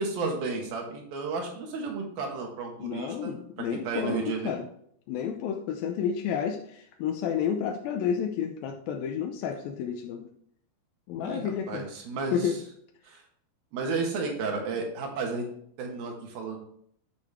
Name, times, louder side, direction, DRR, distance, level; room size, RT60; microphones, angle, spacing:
voice 1, 0.0-3.3 3.7-4.6 11.2-12.6 13.0-13.2 13.7-15.4 15.8-16.6, right 4 dB, 80° right, 1 dB, 3.2 m, -32 dB
voice 2, 2.8-4.6 5.1-10.3 11.1-11.9 12.3-12.5, left 8 dB, 85° left, 4 dB, 2.4 m, -31 dB
11.5 x 6.6 x 3.5 m, 0.66 s
omnidirectional pair, 4.2 m